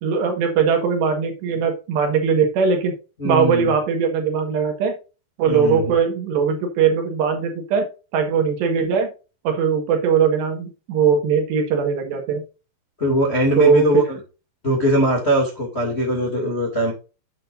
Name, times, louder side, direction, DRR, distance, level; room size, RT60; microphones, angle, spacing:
voice 1, 0.0-3.0 3.2-4.9 5.4-7.9 8.1-9.1 9.5-12.4 13.6-14.0, right 6 dB, 65° right, 4 dB, 3.4 m, -20 dB
voice 2, 3.2-3.7 5.5-5.9 13.0-14.2 14.6-16.9, equal, 30° left, -1 dB, 1.2 m, -21 dB
9.2 x 8.9 x 2.6 m, 0.32 s
omnidirectional pair, 5.7 m